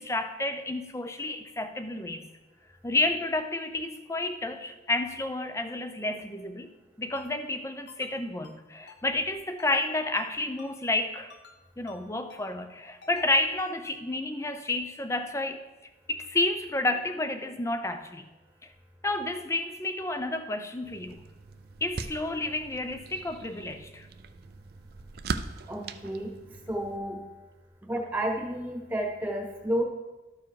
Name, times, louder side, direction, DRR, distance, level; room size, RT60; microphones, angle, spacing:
voice 1, 0.0-2.3 2.8-6.7 7.0-11.3 11.8-15.6 16.1-18.3 18.6-18.7 19.0-21.2 21.8-24.1, left 2 dB, 15° left, 8 dB, 0.5 m, -30 dB
Ringtone, 7.2-7.3 7.9-8.1 8.4-8.6 8.9-9.0 9.6-9.9 10.2-10.3 10.6-10.7 11.3-11.6 11.9-12.0 12.3-12.4 13.0-13.3 13.6-13.7, left 5 dB, 65° left, 1.0 m, -51 dB
sound 1, 20.8-27.0, right 4 dB, 55° right, 0.4 m, -40 dB
voice 2, 25.7-26.3 26.7-27.2 27.8-29.8, right 1 dB, 10° right, 0 dB, 1.2 m, -31 dB
13.0 x 4.7 x 4.8 m, 1.1 s
head